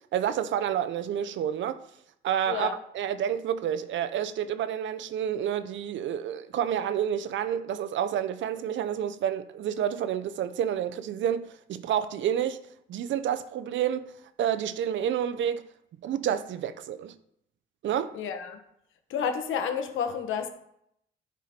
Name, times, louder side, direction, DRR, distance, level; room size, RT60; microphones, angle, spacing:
voice 1, 0.1-1.8 2.2-2.7 2.9-12.6 12.9-14.1 14.4-15.6 16.0-17.1 17.8-18.2, right 9 dB, 70° right, 0.7 m, -29 dB
voice 2, 18.1-18.6 19.1-20.5, left 7 dB, 80° left, 1.3 m, -30 dB
11.5 x 4.9 x 4.4 m
cardioid pair, 90°, 20 cm